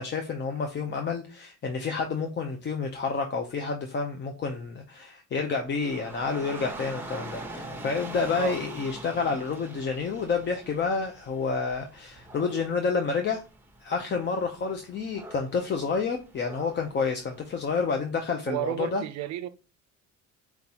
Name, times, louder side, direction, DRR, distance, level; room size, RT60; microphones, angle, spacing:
voice 1, 0.0-13.4 13.8-19.0, left 5 dB, 35° left, 0.7 m, -29 dB
Dog / Rain, 5.7-17.8, right 2 dB, 5° right, 1.0 m, -44 dB
voice 2, 18.5-19.5, right 14 dB, 60° right, 0.5 m, -32 dB
4.6 x 3.9 x 2.9 m
cardioid pair, 120°, 31 cm